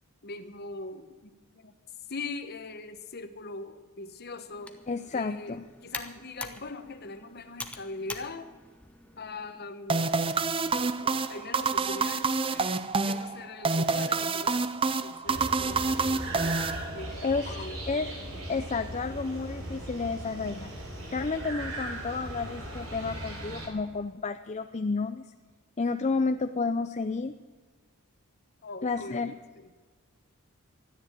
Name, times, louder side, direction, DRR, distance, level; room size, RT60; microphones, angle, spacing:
voice 1, 0.2-1.7 2.1-4.8 5.1-8.5 9.2-10.3 11.0-17.8 28.6-29.7, left 3 dB, 45° left, 9 dB, 1.1 m, -42 dB
Computer keyboard, 4.5-9.6, left 2 dB, 5° left, 1.0 m, -44 dB
voice 2, 4.9-5.6 17.2-18.1 18.5-20.7 21.1-25.3 25.8-27.3 28.8-29.3, left 4 dB, 30° left, 8 dB, 0.5 m, -31 dB
sound 1, 9.9-17.3, right 4 dB, 25° right, 0.5 m, -28 dB
sound 2, 15.3-23.7, right 1 dB, 80° right, 4.3 m, -38 dB
13.0 x 10.0 x 9.1 m, 1.5 s
head